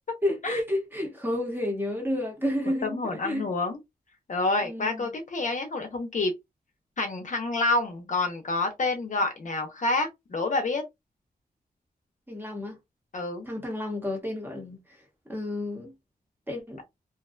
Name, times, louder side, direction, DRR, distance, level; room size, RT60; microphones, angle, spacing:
voice 1, 0.2-3.0 3.2-3.5 4.6-5.0 12.3-12.8 13.4-14.8 15.3-15.9 16.5-16.8, left 1 dB, 10° right, 0.9 m, -30 dB
voice 2, 2.8-3.8 4.3-6.3 7.0-10.8 13.1-13.5, left 2 dB, 50° left, 0.7 m, -28 dB
2.5 x 2.2 x 2.4 m
wide cardioid pair, 170°, 16 cm